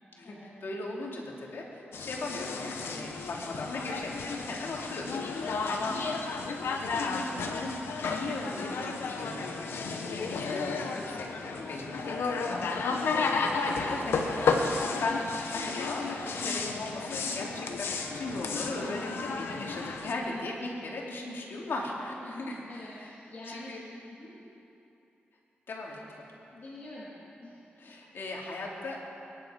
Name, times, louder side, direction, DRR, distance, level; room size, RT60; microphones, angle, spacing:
voice 1, 0.2-6.0 6.8-7.8 8.1-12.6 13.1-15.3 15.5-23.1 23.5-23.8 25.7-26.0 27.8-29.0, left 2 dB, 70° left, -2 dB, 3.1 m, -38 dB
sound 1, 1.9-20.1, left 4 dB, 90° left, 1.2 m, -33 dB
voice 2, 12.4-12.9 20.0-20.6 22.2-24.3 26.5-28.3, left 1 dB, 50° left, -8 dB, 3.4 m, -46 dB
24.0 x 10.5 x 5.3 m, 2.8 s
cardioid pair, 70°, 4 cm